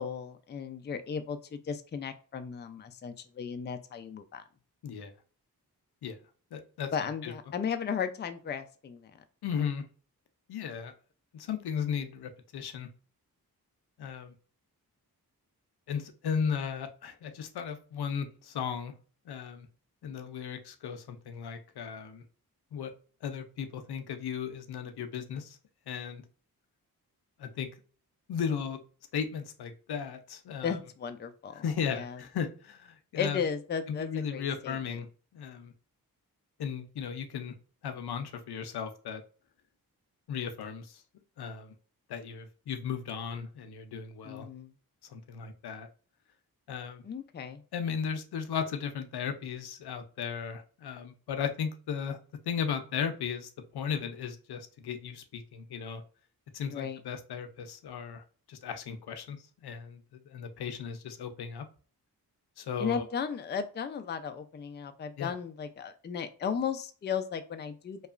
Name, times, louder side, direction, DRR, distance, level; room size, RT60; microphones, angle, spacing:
voice 1, 0.0-4.4 6.9-9.1 30.6-31.6 31.9-32.2 33.2-35.0 44.2-44.7 47.0-47.6 56.7-57.0 62.8-68.1, left 7 dB, 30° left, 9 dB, 0.3 m, -35 dB
voice 2, 6.5-6.9 7.2-7.3 9.4-9.8 10.5-10.9 11.3-12.9 14.0-14.3 15.9-18.9 19.3-19.7 20.0-22.2 22.7-22.9 23.2-25.6 25.9-26.2 27.4-27.7 28.3-28.8 29.1-30.8 31.5-33.4 33.9-35.1 35.3-35.7 36.6-37.5 37.8-39.2 40.3-41.0 41.4-41.7 42.1-44.5 45.1-45.9 46.7-47.0 47.7-52.2 52.5-56.0 56.5-61.7 62.6-63.1 65.2-65.3, left 7 dB, 85° left, 7 dB, 0.5 m, -36 dB
2.8 x 2.3 x 2.4 m, 0.39 s
cardioid pair, 55°, 38 cm